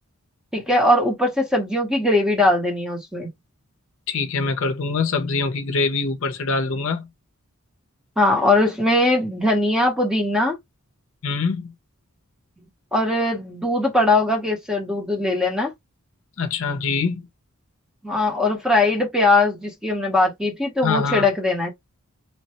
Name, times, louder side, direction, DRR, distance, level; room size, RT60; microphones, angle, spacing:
voice 1, 0.5-3.3 8.2-10.6 12.9-15.7 18.0-21.7, left 2 dB, 5° right, 0.7 m, -20 dB
voice 2, 4.1-7.1 11.2-11.7 16.4-17.3 20.8-21.3, left 4 dB, 65° left, 0.6 m, -24 dB
3.2 x 2.1 x 2.8 m
head